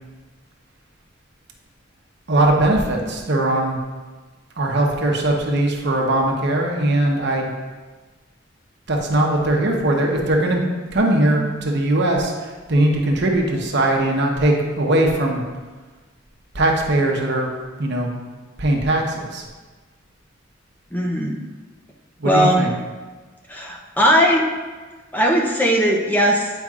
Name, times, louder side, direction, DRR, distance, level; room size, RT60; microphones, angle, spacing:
voice 1, 2.3-3.8 4.6-7.5 8.9-10.6 10.9-12.3 12.7-15.4 16.5-17.5 17.8-18.1 18.6-19.4 22.2-22.7, right 1 dB, 60° right, 1 dB, 0.9 m, -20 dB
voice 2, 20.9-21.4 22.2-22.6 23.5-24.5 25.1-26.5, equal, 10° left, -1 dB, 0.6 m, -18 dB
9.0 x 5.2 x 2.4 m, 1.3 s
head